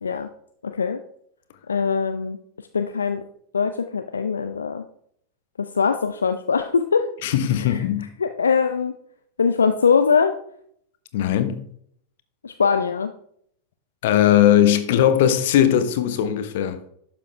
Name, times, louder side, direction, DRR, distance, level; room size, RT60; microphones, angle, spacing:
voice 1, 0.6-1.0 1.7-2.4 2.7-3.2 3.5-4.8 5.6-7.1 7.6-7.8 8.2-8.9 9.4-10.3 12.4-13.1, left 6 dB, 70° left, 0.5 m, -22 dB
voice 2, 7.2-8.1 11.1-11.7 14.0-16.9, left 10 dB, 55° left, 1.0 m, -19 dB
12.0 x 7.5 x 3.3 m
figure-of-eight pair, 90°, 0 cm